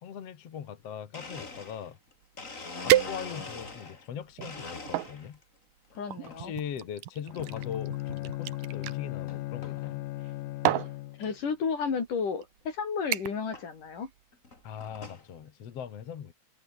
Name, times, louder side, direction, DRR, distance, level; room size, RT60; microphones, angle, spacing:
voice 1, 0.0-2.0 2.8-5.4 6.3-10.0 14.6-16.3, left 8 dB, 50° left, 2.6 m, -40 dB
Domestic sounds home sounds, 0.8-0.9 1.1-4.1 4.4-5.4 5.9-6.4 7.4-7.7 8.3-8.4 9.3-9.4 9.6-10.0 10.4-10.5 10.7-10.8 11.2-11.3 12.6-12.7 13.5-13.7 14.3-15.3, left 3 dB, 25° left, 3.1 m, -43 dB
sound 1, 2.2-2.3 2.9-3.7 4.3-5.1 6.1-9.0 10.1-10.3 10.6-11.0 11.8-12.0 12.4-12.7 13.1-13.5 13.8-14.2 14.6-14.7, right 14 dB, 80° right, 2.8 m, -30 dB
voice 2, 5.9-6.5 11.2-14.1, left 5 dB, 65° left, 5.7 m, -32 dB
Bowed string instrument, 7.3-11.4, left 17 dB, 85° left, 2.5 m, -37 dB
omnidirectional pair, 3.9 m